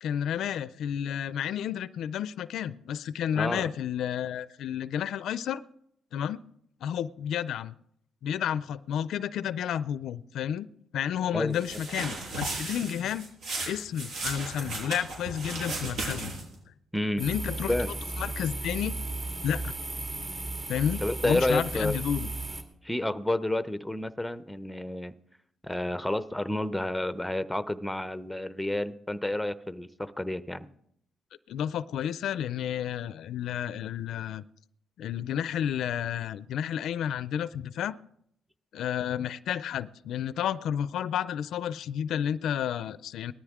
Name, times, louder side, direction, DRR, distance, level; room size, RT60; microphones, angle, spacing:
voice 1, 0.0-5.6 6.1-6.4 6.8-7.7 8.2-10.7 10.9-13.3 13.6-16.3 17.2-17.8 18.2-19.0 19.4-19.7 20.7-22.3 31.5-34.4 35.0-38.0 38.7-43.3, left 9 dB, 80° left, 17 dB, 0.4 m, -31 dB
voice 2, 3.4-3.7 11.3-11.6 16.9-17.3 17.7-17.9 21.0-22.0 22.8-25.1 25.6-30.7, left 1 dB, 5° left, 13 dB, 0.7 m, -30 dB
sound 1, 11.5-16.6, right 2 dB, 80° right, 6.0 m, -35 dB
sound 2, 17.2-22.6, right 2 dB, 35° right, 2.0 m, -35 dB
19.0 x 13.5 x 3.6 m, 0.72 s
cardioid pair, 105°, 0 cm